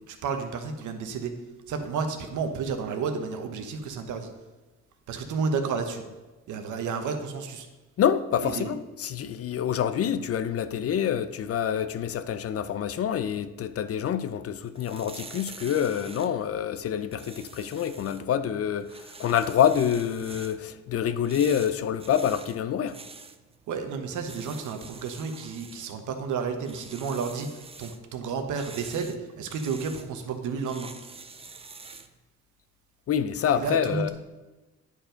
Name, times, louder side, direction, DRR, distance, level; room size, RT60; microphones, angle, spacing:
voice 1, 0.1-1.3 1.7-4.3 5.1-6.0 6.5-7.7 8.4-8.7 23.7-30.9 33.5-34.1, right 5 dB, 75° right, 1.1 m, -31 dB
voice 2, 8.0-23.0 33.1-34.1, left 9 dB, 50° left, 0.5 m, -27 dB
sound 1, 14.5-32.2, right 4 dB, 20° right, 0.6 m, -47 dB
9.9 x 4.6 x 5.1 m
cardioid pair, 90°, 30 cm